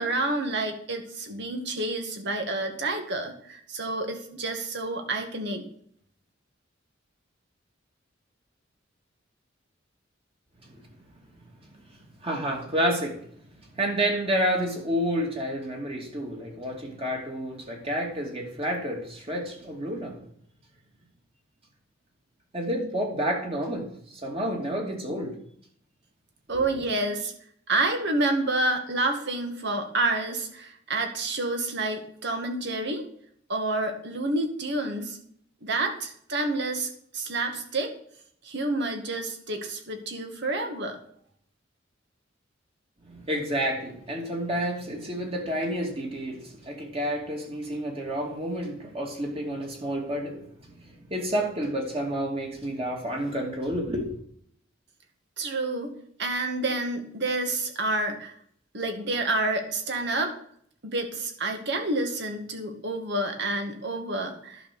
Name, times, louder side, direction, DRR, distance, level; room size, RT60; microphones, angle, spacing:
voice 1, 0.0-5.6 26.5-27.3 27.7-33.0 33.5-35.2 35.6-37.9 38.4-41.0 55.4-55.9 56.2-58.3 58.7-60.3 60.8-64.6, right 2 dB, 60° right, 4 dB, 2.1 m, -29 dB
voice 2, 12.2-13.2 13.8-20.2 22.5-23.9 24.2-25.4 43.1-50.4 50.8-54.2, equal, 30° right, 1 dB, 2.7 m, -29 dB
11.0 x 6.2 x 6.9 m, 0.65 s
head